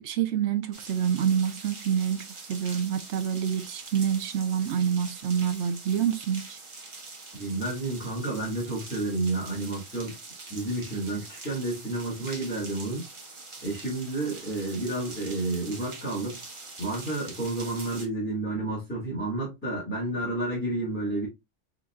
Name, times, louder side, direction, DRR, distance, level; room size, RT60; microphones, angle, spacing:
voice 1, 0.0-6.6, right 8 dB, 70° right, 0.9 m, -27 dB
sound 1, 0.7-18.1, right 3 dB, 30° right, 0.7 m, -44 dB
voice 2, 7.3-10.1 10.5-13.1 13.6-16.4 16.8-21.3, right 2 dB, 10° left, 1.6 m, -30 dB
3.9 x 3.8 x 2.2 m
omnidirectional pair, 1.3 m